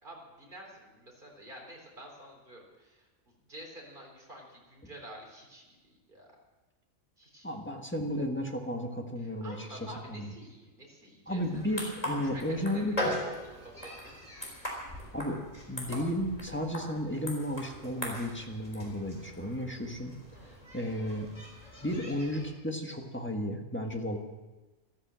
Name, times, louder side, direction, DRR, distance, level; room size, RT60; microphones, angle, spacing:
voice 1, 0.0-6.3 7.2-7.6 9.2-11.6 12.1-13.0 13.2-14.2 20.3-20.7, right 1 dB, 35° right, 0 dB, 4.1 m, -49 dB
voice 2, 7.4-10.3 11.3-13.2 15.1-15.4 15.7-20.1 20.7-21.3 21.8-24.2, equal, 10° left, 2 dB, 1.6 m, -33 dB
sound 1, 11.4-22.5, equal, 25° left, 4.1 m, -40 dB
14.0 x 13.5 x 7.6 m, 1.2 s
omnidirectional pair, 1.4 m